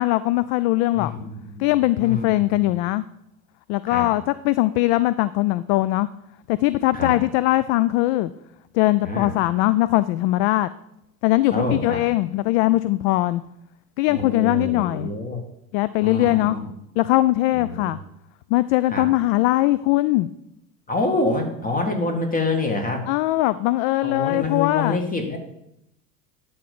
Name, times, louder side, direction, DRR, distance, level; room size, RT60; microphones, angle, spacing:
voice 1, 0.0-1.2 1.6-3.1 3.7-6.1 6.5-8.3 8.7-10.7 11.2-13.4 14.0-15.1 15.7-16.6 17.0-18.0 18.5-20.3 23.1-25.0, left 17 dB, 50° left, 15 dB, 0.4 m, -20 dB
voice 2, 0.9-1.7 2.0-2.7 3.9-4.1 6.9-7.2 9.0-9.3 11.5-12.0 14.1-15.4 16.0-16.6 17.5-17.9 18.9-19.1 20.9-23.1 24.0-25.4, left 2 dB, 20° left, 4 dB, 2.2 m, -26 dB
11.0 x 4.2 x 6.8 m, 0.80 s
hypercardioid pair, 75°, 45 cm